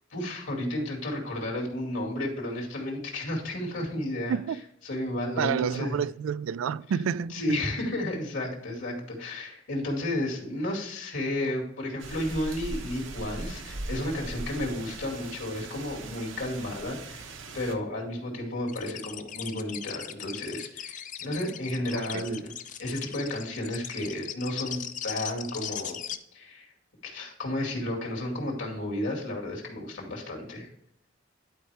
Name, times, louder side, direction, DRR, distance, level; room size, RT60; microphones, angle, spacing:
voice 1, 0.1-4.4 4.9-6.0 7.3-17.2 17.5-22.5 22.8-26.0 26.3-26.7 27.0-30.7, left 1 dB, 70° left, 2.3 m, -32 dB
voice 2, 5.4-7.4 21.9-22.4, right 7 dB, 85° right, 0.3 m, -29 dB
sound 1, 12.0-17.7, right 2 dB, 70° right, 1.0 m, -39 dB
sound 2, 18.7-26.2, left 9 dB, 40° left, 0.5 m, -38 dB
11.0 x 4.5 x 3.4 m
head